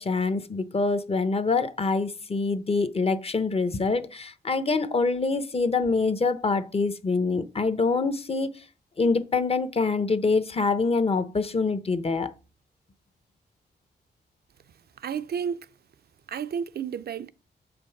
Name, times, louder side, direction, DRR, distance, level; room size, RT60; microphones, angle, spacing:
voice 1, 0.0-8.5 9.0-12.3, left 4 dB, 35° left, 0.8 m, -25 dB
voice 2, 15.0-15.7 16.3-17.3, right 7 dB, 60° right, 0.5 m, -31 dB
7.0 x 5.2 x 5.8 m
cardioid pair, 90°, 18 cm